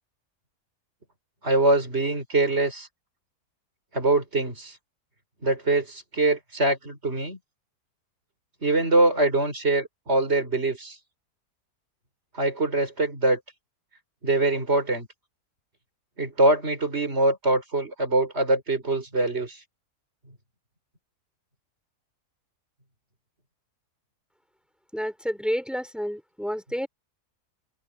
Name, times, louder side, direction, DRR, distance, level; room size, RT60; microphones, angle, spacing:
voice 1, 1.4-2.9 3.9-4.8 5.4-7.4 8.6-11.0 12.3-13.4 14.2-15.1 16.2-19.6, right 2 dB, 40° right, 5.3 m, -23 dB
voice 2, 24.9-26.9, equal, ahead, 3.6 m, -30 dB
open air
omnidirectional pair, 1.7 m